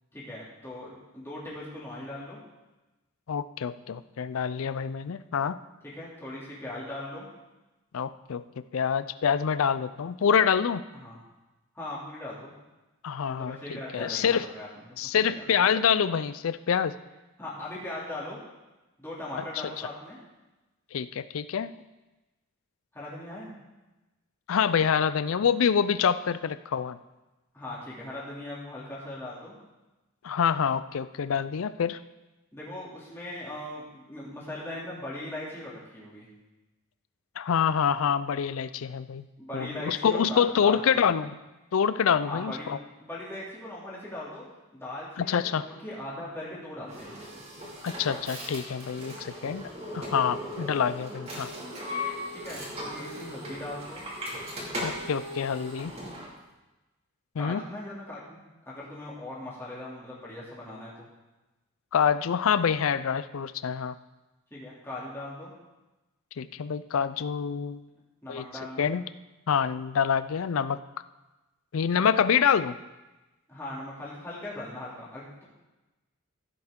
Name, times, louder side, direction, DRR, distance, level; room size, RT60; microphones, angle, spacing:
voice 1, 0.1-2.4 5.9-7.3 10.9-11.2 11.7-12.5 13.3-15.3 17.4-18.4 19.0-20.2 22.9-23.5 27.5-29.5 32.5-36.3 39.4-41.1 42.2-44.5 44.7-47.4 52.3-54.1 57.4-58.4 58.7-61.1 64.5-65.5 68.2-68.9 73.5-75.4, left 1 dB, 10° left, -8 dB, 2.7 m, -39 dB
voice 2, 3.3-5.6 7.9-8.4 8.7-10.8 13.0-13.6 13.9-14.4 15.0-16.9 20.9-21.7 24.5-27.0 30.2-32.0 37.4-39.2 39.5-41.4 41.7-42.8 45.2-45.7 47.8-49.7 49.9-51.5 54.8-55.9 57.4-57.6 61.9-63.9 66.4-67.8 68.3-68.4 68.8-69.0 69.5-70.8 71.7-72.8, left 7 dB, 70° left, 14 dB, 0.4 m, -26 dB
sound 1, 46.9-56.3, left 1 dB, 30° right, 2.5 m, -38 dB
15.0 x 7.9 x 3.7 m, 1.1 s
head